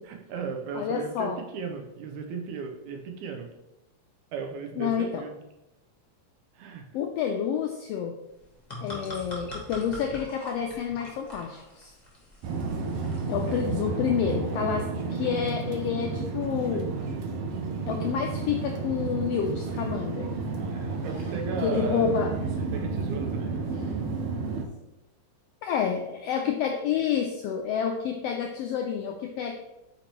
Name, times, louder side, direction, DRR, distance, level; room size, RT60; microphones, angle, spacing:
voice 1, 0.1-3.5 4.3-5.3 6.5-6.9 13.5-13.6 21.0-22.2 22.7-23.4, right 5 dB, 85° right, 3 dB, 2.2 m, -35 dB
voice 2, 0.7-1.4 4.8-5.2 6.9-8.1 8.8-11.9 13.3-16.9 17.9-20.3 20.8-21.2 21.6-22.3 23.7-23.9 25.6-29.5, left 7 dB, 90° left, 3 dB, 1.4 m, -29 dB
sound 1, 8.3-13.8, left 1 dB, 30° left, 0.8 m, -43 dB
sound 2, 12.4-24.6, right 4 dB, 70° right, 1.6 m, -31 dB
8.5 x 4.3 x 3.0 m, 0.95 s
omnidirectional pair, 3.3 m